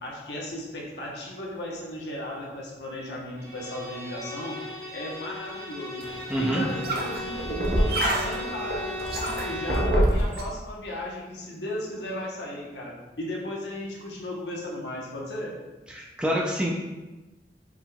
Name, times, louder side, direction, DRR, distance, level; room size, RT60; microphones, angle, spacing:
voice 1, 0.0-4.6 4.9-6.0 6.4-15.6, left 1 dB, 80° left, -3 dB, 1.0 m, -35 dB
Bowed string instrument, 3.4-10.0, left 2 dB, 30° right, 1.4 m, -37 dB
sound 1, 6.0-10.4, right 1 dB, 55° right, 0.6 m, -26 dB
voice 2, 6.3-6.6 15.9-16.7, right 1 dB, 5° right, -3 dB, 0.4 m, -26 dB
4.9 x 3.6 x 2.3 m, 1.1 s
head